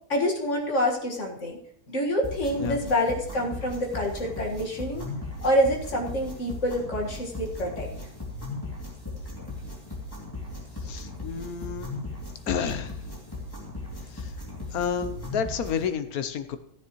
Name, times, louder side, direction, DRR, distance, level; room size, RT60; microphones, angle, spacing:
voice 1, 0.1-1.6 1.9-5.1 5.4-7.9, equal, 50° left, 0 dB, 2.0 m, -27 dB
sound 1, 2.2-15.9, left 2 dB, 15° left, 2.5 m, -37 dB
voice 2, 10.8-11.9 12.5-12.9 14.2-14.3 14.7-16.6, left 7 dB, 65° left, 10 dB, 1.2 m, -30 dB
14.0 x 9.7 x 3.1 m, 0.68 s
omnidirectional pair, 1.7 m